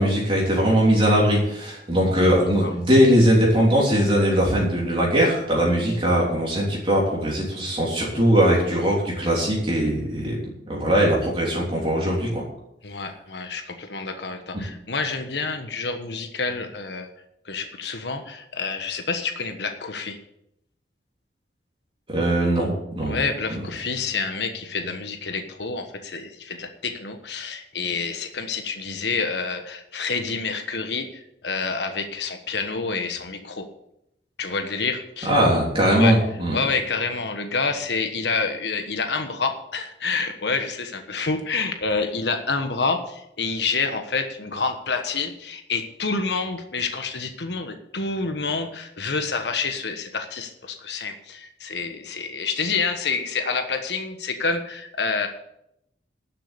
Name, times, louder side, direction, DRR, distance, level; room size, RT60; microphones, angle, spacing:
voice 1, 0.0-10.4 10.7-12.4 22.1-22.7 22.9-23.2 23.5-23.6 35.2-36.6, equal, 30° right, -4 dB, 3.4 m, -20 dB
voice 2, 12.8-17.1 17.4-20.2 23.1-33.7 34.4-35.3 36.0-36.1 36.5-55.3, left 4 dB, 75° left, 6 dB, 1.3 m, -28 dB
12.0 x 7.6 x 8.3 m, 0.80 s
head